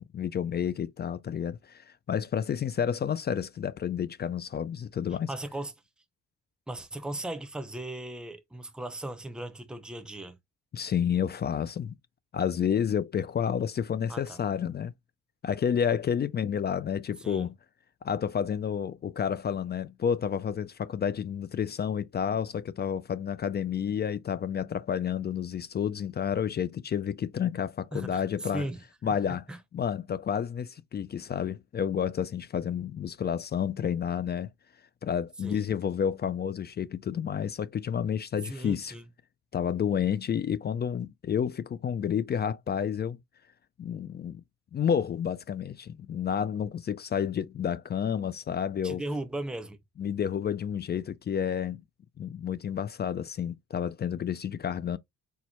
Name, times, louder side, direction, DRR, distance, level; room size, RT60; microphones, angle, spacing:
voice 1, 0.1-5.3 10.7-11.9 12.3-14.9 15.4-17.6 18.0-28.7 29.0-29.4 29.7-34.5 35.0-38.9 39.5-43.2 43.8-44.4 44.7-49.0 50.0-51.8 52.2-55.0, left 8 dB, 35° left, 0.4 m, -30 dB
voice 2, 5.3-5.7 6.7-10.4 14.1-14.4 17.2-17.5 27.9-29.6 35.4-35.6 38.4-39.1 48.8-49.8, right 1 dB, 5° right, 0.7 m, -37 dB
4.5 x 2.1 x 4.2 m
cardioid pair, 90°, 30 cm